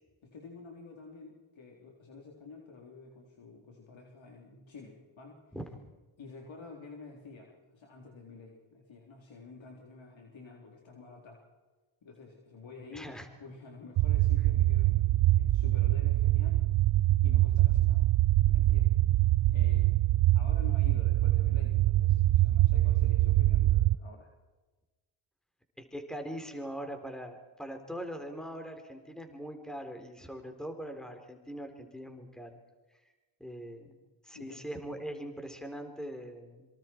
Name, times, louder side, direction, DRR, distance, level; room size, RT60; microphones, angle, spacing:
voice 1, 0.2-5.6 6.2-11.4 12.0-13.1 13.4-16.7 17.2-18.1 18.5-18.9 19.5-19.9 20.3-24.3 34.3-34.6, left 4 dB, 70° left, 0 dB, 3.8 m, -49 dB
voice 2, 12.9-13.3 25.8-32.6 33.4-34.0 34.2-36.7, equal, ahead, 5 dB, 3.9 m, -41 dB
sound 1, 14.0-23.9, right 15 dB, 70° right, 0.6 m, -24 dB
26.0 x 24.5 x 4.6 m, 1.2 s
cardioid pair, 65°, 49 cm